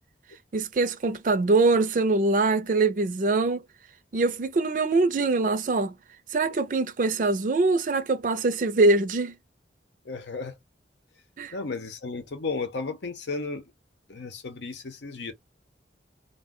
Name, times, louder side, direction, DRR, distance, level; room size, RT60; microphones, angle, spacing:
voice 1, 0.5-3.6 4.1-5.9 6.3-9.4 11.4-11.5, right 3 dB, 50° right, 0.4 m, -23 dB
voice 2, 10.0-10.6 11.5-13.6 14.1-15.3, left 4 dB, 85° left, 0.7 m, -34 dB
2.3 x 2.2 x 3.6 m
head